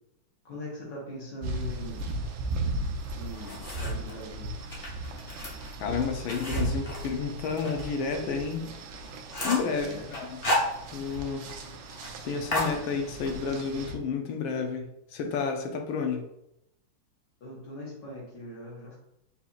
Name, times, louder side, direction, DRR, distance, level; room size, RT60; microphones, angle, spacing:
voice 1, 0.4-2.1 3.1-4.6 9.6-10.1 17.4-19.0, left 1 dB, 60° left, -3 dB, 1.6 m, -41 dB
sound 1, 1.4-14.0, right 2 dB, 70° right, 1.2 m, -36 dB
sound 2, 3.0-4.1 4.6-7.8 8.2-8.3 8.7-8.8 9.0-9.7 10.1-11.2 11.5-11.6 11.9-12.1 12.5-13.4, left 1 dB, 40° left, 0.8 m, -33 dB
voice 2, 5.8-8.7 9.4-10.4 10.9-11.5 12.2-16.3, left 5 dB, 75° left, 4 dB, 1.3 m, -31 dB
4.2 x 4.1 x 2.4 m, 0.82 s
omnidirectional pair, 2.4 m